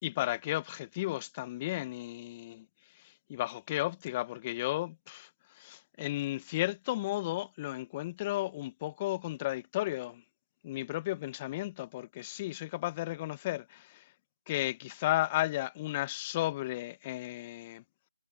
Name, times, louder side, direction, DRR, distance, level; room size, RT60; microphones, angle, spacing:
voice 1, 0.0-2.6 3.3-5.3 5.6-10.2 10.6-14.0 14.5-17.8, left 17 dB, 15° left, 0.9 m, -34 dB
figure-of-eight pair, 160°, 0 cm